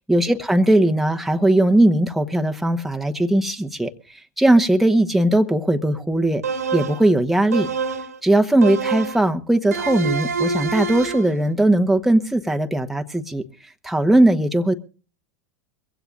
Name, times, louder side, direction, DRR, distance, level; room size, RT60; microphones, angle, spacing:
voice 1, 0.1-6.4 6.7-7.7 8.2-13.4 13.8-14.7, right 1 dB, ahead, 4 dB, 1.1 m, -19 dB
sound 1, 6.4-7.1 7.5-8.2 8.6-9.3 9.7-11.3, right 5 dB, 80° right, 2.1 m, -26 dB
23.5 x 16.0 x 2.5 m, 0.36 s
figure-of-eight pair, 90°, 9 cm